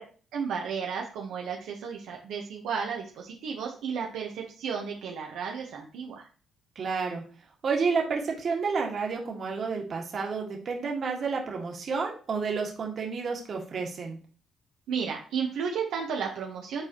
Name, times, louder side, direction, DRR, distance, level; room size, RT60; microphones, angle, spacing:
voice 1, 0.3-6.2 14.9-16.8, right 6 dB, 85° right, 0 dB, 1.0 m, -33 dB
voice 2, 6.8-7.2 7.6-14.2, right 5 dB, 50° right, 1 dB, 1.7 m, -30 dB
7.6 x 4.2 x 2.9 m, 0.39 s
cardioid pair, 90°, 0 cm